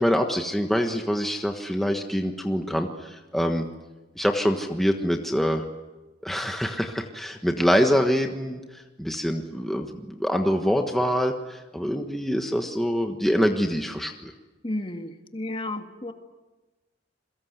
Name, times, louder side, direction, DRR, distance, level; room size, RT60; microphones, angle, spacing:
voice 1, 0.0-3.6 4.2-5.7 6.2-8.6 9.0-14.3, equal, ahead, 3 dB, 1.4 m, -25 dB
voice 2, 14.6-16.1, left 1 dB, 30° left, 6 dB, 1.8 m, -32 dB
27.5 x 22.5 x 8.1 m, 1.1 s
head